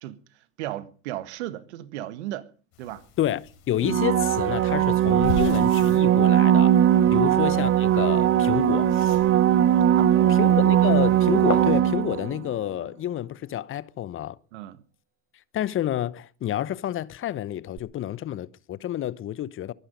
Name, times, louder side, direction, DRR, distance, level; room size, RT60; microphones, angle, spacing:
voice 1, 0.6-2.5 2.8-3.0 7.1-7.3 10.0-10.4 14.5-14.8, right 14 dB, 75° right, 1.5 m, -35 dB
sound 1, 2.7-11.8, left 5 dB, 70° left, 6.0 m, -40 dB
voice 2, 3.2-6.8 7.1-8.9 10.3-14.4 15.5-19.7, left 12 dB, 35° left, 0.9 m, -29 dB
sound 2, 3.8-12.4 17.8-17.9, right 11 dB, 40° right, 0.9 m, -20 dB
23.0 x 10.0 x 5.3 m
hypercardioid pair, 85°, 34 cm